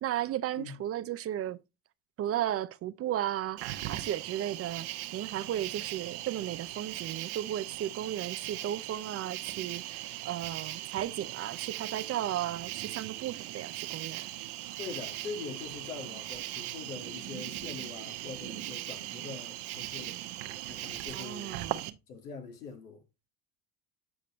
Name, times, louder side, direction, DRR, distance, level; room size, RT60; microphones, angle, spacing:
voice 1, 0.0-1.6 2.2-14.3 21.1-22.0, right 12 dB, 35° right, 0.5 m, -35 dB
Cricket, 3.6-21.9, right 15 dB, 60° right, 1.0 m, -39 dB
voice 2, 14.8-20.2 20.7-21.6 22.1-23.0, left 5 dB, 90° left, 2.3 m, -43 dB
8.6 x 5.0 x 3.0 m
hypercardioid pair, 90°, 45 cm